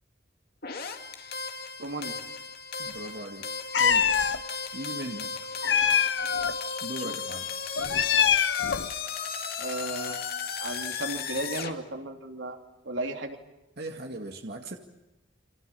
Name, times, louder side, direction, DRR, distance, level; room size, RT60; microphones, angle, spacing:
sound 1, 0.6-11.7, left 5 dB, 55° left, 2.3 m, -36 dB
voice 1, 1.8-2.2 7.0-7.1 9.6-10.2 10.6-12.6 12.8-13.4, right 2 dB, 85° right, 4 dB, 3.0 m, -34 dB
voice 2, 2.8-3.5 3.8-4.1 4.7-5.3 6.8-7.5 13.8-14.8, right 1 dB, 60° right, 3 dB, 2.2 m, -38 dB
Meow, 3.7-4.4 5.6-6.5 7.8-8.9, left 7 dB, 75° left, 1.0 m, -23 dB
29.0 x 27.0 x 7.1 m, 0.98 s
head